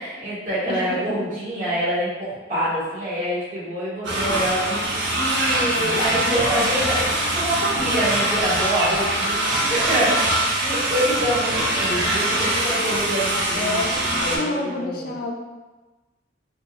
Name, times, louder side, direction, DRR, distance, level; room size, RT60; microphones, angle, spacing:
voice 1, 0.0-13.8 14.2-15.1, right 1 dB, 40° right, -10 dB, 1.3 m, -26 dB
voice 2, 0.7-1.3 13.5-14.0 14.3-15.3, left 2 dB, 50° left, 1 dB, 0.3 m, -28 dB
sound 1, 4.0-14.4, right 1 dB, 70° right, 0.7 m, -23 dB
2.9 x 2.2 x 3.4 m, 1.2 s
head